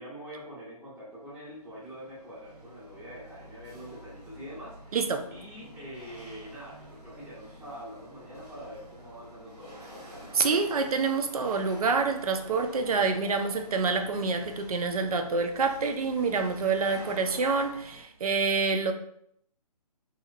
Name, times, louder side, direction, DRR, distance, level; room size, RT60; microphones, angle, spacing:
voice 1, 0.0-5.0 5.3-10.3, equal, 5° right, -10 dB, 0.7 m, -45 dB
Chatter / Hiss / Rattle, 1.1-18.0, equal, 85° right, 1.1 m, -49 dB
voice 2, 4.9-5.3 10.3-18.9, right 4 dB, 65° right, 6 dB, 0.5 m, -27 dB
3.1 x 2.7 x 2.4 m, 0.69 s
figure-of-eight pair, 150°, 20 cm